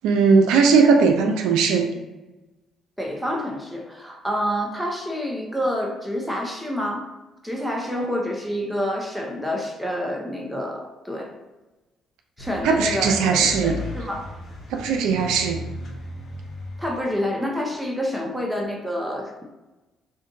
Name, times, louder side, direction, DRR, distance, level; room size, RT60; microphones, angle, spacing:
voice 1, 0.0-1.9 12.6-13.7 14.7-15.6, right 5 dB, 75° right, 3 dB, 0.3 m, -18 dB
voice 2, 3.0-7.1 7.4-11.3 12.4-14.3 16.8-19.4, equal, ahead, -1 dB, 0.8 m, -28 dB
sound 1, 12.4-17.0, left 1 dB, 55° left, 0.9 m, -36 dB
2.5 x 2.4 x 3.9 m, 1.1 s
hypercardioid pair, 55°, 0 cm